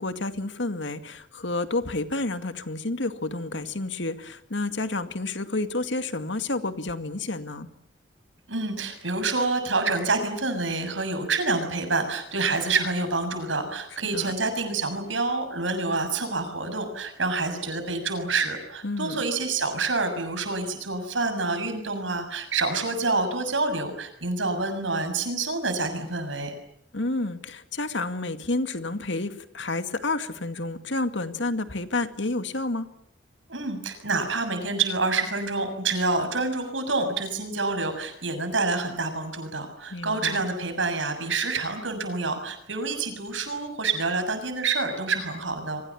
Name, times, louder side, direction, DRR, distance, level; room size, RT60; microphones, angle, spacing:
voice 1, 0.0-7.7 14.1-14.3 18.8-19.2 26.9-32.9 39.9-40.4, left 2 dB, 75° left, 9 dB, 2.2 m, -30 dB
voice 2, 8.5-26.5 33.5-45.8, right 3 dB, 90° right, 7 dB, 6.9 m, -27 dB
29.5 x 24.0 x 7.3 m, 0.69 s
head